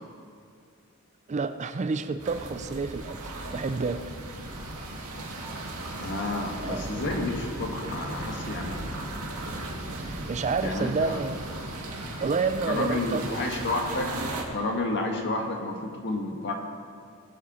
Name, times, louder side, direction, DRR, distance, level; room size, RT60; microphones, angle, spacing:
voice 1, 1.3-4.1 6.6-7.1 10.0-11.5 12.2-13.5, right 4 dB, 30° right, 10 dB, 0.4 m, -30 dB
sound 1, 2.2-14.4, right 2 dB, 85° right, 1.7 m, -36 dB
voice 2, 6.0-9.1 10.6-11.2 12.7-14.1 14.5-16.5, left 2 dB, 55° left, 2 dB, 1.6 m, -30 dB
19.5 x 7.6 x 4.2 m, 2.4 s
head